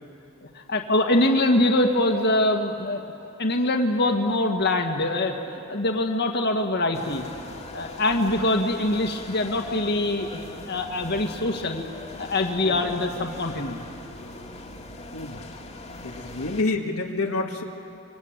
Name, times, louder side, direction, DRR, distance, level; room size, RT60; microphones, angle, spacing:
voice 1, 0.4-3.0 3.4-7.2 7.7-11.8 12.2-13.8, left 1 dB, 50° left, 3 dB, 2.0 m, -24 dB
sound 1, 6.9-16.6, left 2 dB, 30° left, 2.1 m, -41 dB
voice 2, 12.6-12.9 15.1-15.5 16.0-17.6, left 3 dB, 70° left, 1 dB, 1.7 m, -28 dB
26.5 x 24.5 x 9.1 m, 2.8 s
head